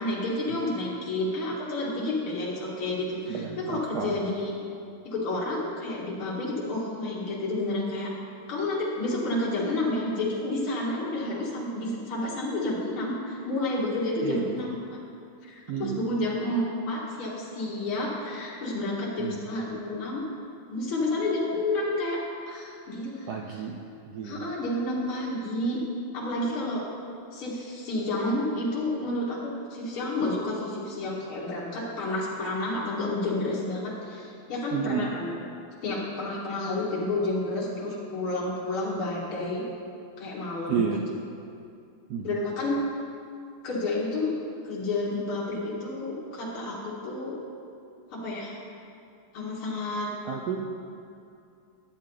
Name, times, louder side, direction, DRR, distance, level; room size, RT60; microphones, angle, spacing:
voice 1, 0.0-4.6 5.0-8.1 8.5-14.8 15.4-15.5 15.8-20.2 20.7-22.2 22.5-23.3 24.2-25.8 26.1-26.8 27.3-35.3 35.8-39.6 40.2-41.0 42.2-42.8 43.6-44.3 44.6-47.4 48.1-48.5 49.3-50.1, left 2 dB, 80° left, -6 dB, 2.4 m, -30 dB
voice 2, 3.3-4.3 14.2-14.7 15.7-16.1 19.2-19.4 23.3-23.8 24.1-24.5 34.7-35.1 40.7-41.1 42.1-42.4 50.2-50.7, right 7 dB, 75° right, 1 dB, 0.9 m, -31 dB
10.5 x 8.7 x 3.8 m, 2.5 s
omnidirectional pair, 2.3 m